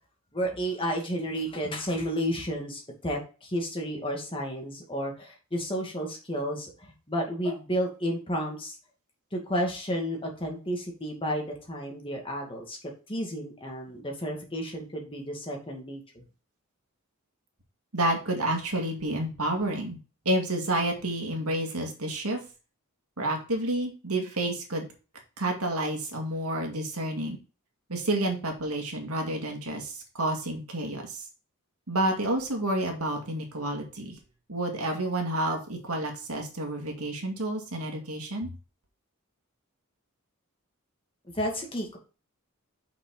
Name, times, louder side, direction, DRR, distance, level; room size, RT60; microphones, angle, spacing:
voice 1, 0.3-8.8 9.3-16.2 41.3-42.0, equal, 25° left, 0 dB, 2.2 m, -32 dB
voice 2, 17.9-20.0 20.3-22.4 23.2-24.9 25.4-27.4 27.9-31.2 31.9-34.2 34.5-38.5, right 1 dB, 90° right, 3 dB, 2.2 m, -29 dB
6.0 x 5.9 x 4.0 m, 0.34 s
head